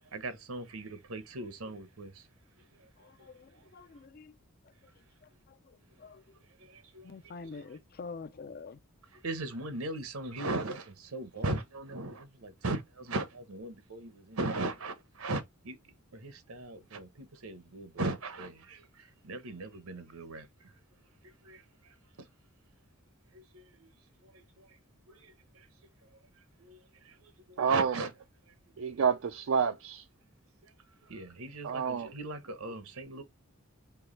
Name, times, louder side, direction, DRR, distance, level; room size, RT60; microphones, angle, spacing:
voice 1, 0.1-2.3 2.8-3.7 6.6-7.8 9.1-20.7 21.2-22.3 23.3-23.9 24.2-24.8 25.1-25.7 26.6-28.1 30.6-30.7 31.0-33.2, right 2 dB, 80° right, 1.0 m, -39 dB
voice 2, 3.7-4.3 6.0-6.2 7.0-8.8, left 4 dB, 45° left, 0.4 m, -44 dB
voice 3, 27.6-27.9 28.8-30.0 31.6-32.1, right 6 dB, 65° right, 0.4 m, -28 dB
4.6 x 3.0 x 3.2 m
head